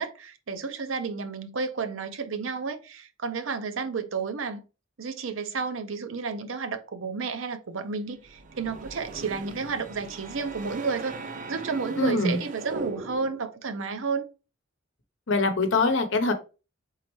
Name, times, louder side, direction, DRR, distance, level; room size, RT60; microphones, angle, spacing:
voice 1, 0.0-4.6 5.0-11.2 11.5-14.3, right 5 dB, 80° right, 0.6 m, -31 dB
sound 1, 8.2-13.5, right 3 dB, 40° right, 0.5 m, -39 dB
voice 2, 12.0-12.4 15.3-16.3, left 3 dB, 70° left, 0.8 m, -23 dB
4.3 x 3.7 x 3.1 m
head